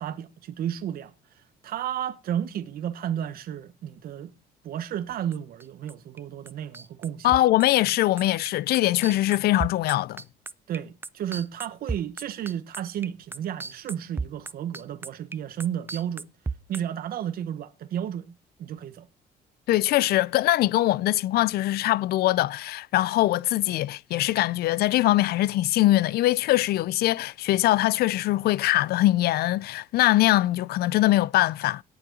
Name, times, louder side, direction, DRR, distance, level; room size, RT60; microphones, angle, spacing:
voice 1, 0.0-4.3 4.6-7.3 10.7-16.3 16.7-18.3 18.6-19.1, right 10 dB, 60° right, 1.1 m, -32 dB
sound 1, 5.1-6.2 6.5-16.8, right 4 dB, 15° right, 0.5 m, -34 dB
voice 2, 7.2-10.2 19.7-31.8, left 16 dB, 70° left, 0.5 m, -22 dB
17.5 x 7.0 x 3.9 m
cardioid pair, 110°, 17 cm